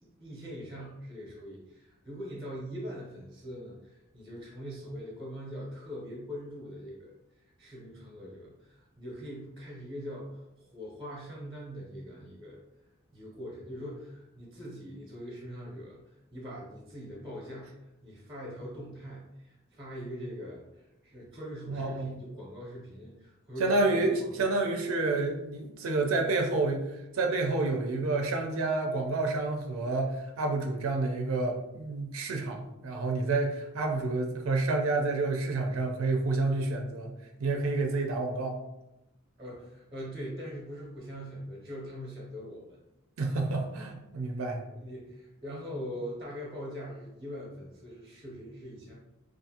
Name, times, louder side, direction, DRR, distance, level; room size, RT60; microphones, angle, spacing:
voice 1, 0.0-7.1 7.6-12.6 13.1-24.5 39.4-42.8 43.3-43.5 44.7-48.9, equal, 20° right, -5 dB, 0.7 m, -42 dB
voice 2, 21.7-22.2 23.6-37.1 37.4-38.6 43.2-44.6, right 3 dB, 75° right, 2 dB, 0.4 m, -29 dB
2.5 x 2.4 x 2.7 m, 0.91 s
head